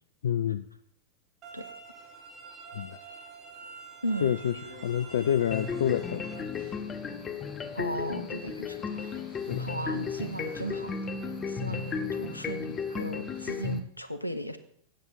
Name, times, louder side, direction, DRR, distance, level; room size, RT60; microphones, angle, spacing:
voice 1, 0.2-0.7 2.7-3.0 4.2-4.5 4.8-6.2 9.5-9.6 11.7-11.8, left 9 dB, 60° left, 13 dB, 0.3 m, -28 dB
sound 1, 1.4-6.4, right 4 dB, 30° right, 1.8 m, -47 dB
voice 2, 4.0-4.3 7.7-8.8 9.6-11.0 11.5-14.6, right 1 dB, 85° left, 11 dB, 0.8 m, -36 dB
sound 2, 4.1-13.7, right 2 dB, 65° right, 2.8 m, -53 dB
sound 3, 5.5-13.8, left 5 dB, 20° left, 0.9 m, -34 dB
12.5 x 8.7 x 4.2 m, 0.64 s
figure-of-eight pair, 90°, 0 cm